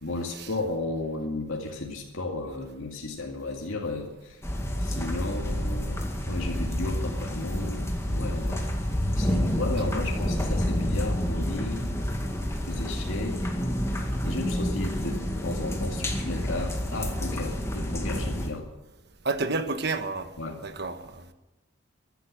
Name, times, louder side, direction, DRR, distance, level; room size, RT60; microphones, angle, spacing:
voice 1, 0.0-4.4 4.8-8.6 9.2-12.1 12.7-13.4 14.2-18.7 20.4-20.6, left 2 dB, 90° left, 2.3 m, -34 dB
sound 1, 4.4-18.5, equal, 15° left, 2.0 m, -29 dB
voice 2, 19.2-20.3 20.6-21.3, right 3 dB, 55° right, 1.3 m, -30 dB
15.0 x 11.5 x 7.5 m
head